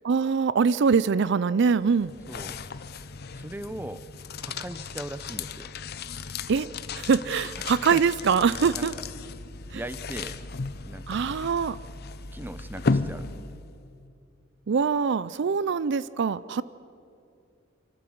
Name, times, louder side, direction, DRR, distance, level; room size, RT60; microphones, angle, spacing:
voice 1, 0.0-2.1 6.5-6.7 7.0-8.9 9.7-9.8 11.1-11.8 14.7-16.6, right 5 dB, 60° right, 17 dB, 0.4 m, -23 dB
sound 1, 1.6-13.8, left 4 dB, 50° left, 0.7 m, -35 dB
voice 2, 2.3-2.6 3.3-4.1 4.4-5.7 7.6-8.0 8.7-9.0 9.7-10.4 10.8-11.4 12.3-13.3, right 1 dB, 10° right, 13 dB, 0.6 m, -39 dB
28.5 x 12.0 x 7.7 m, 2.5 s
head